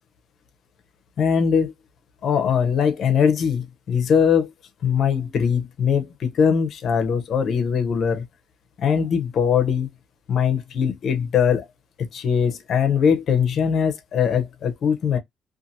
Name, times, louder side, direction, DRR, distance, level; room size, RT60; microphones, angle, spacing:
voice 1, 1.2-1.7 2.2-4.5 4.8-8.2 8.8-9.9 10.3-11.6 12.0-15.2, left 7 dB, 65° left, 0.7 m, -21 dB
2.6 x 2.5 x 2.6 m
cardioid pair, 90°, 0 cm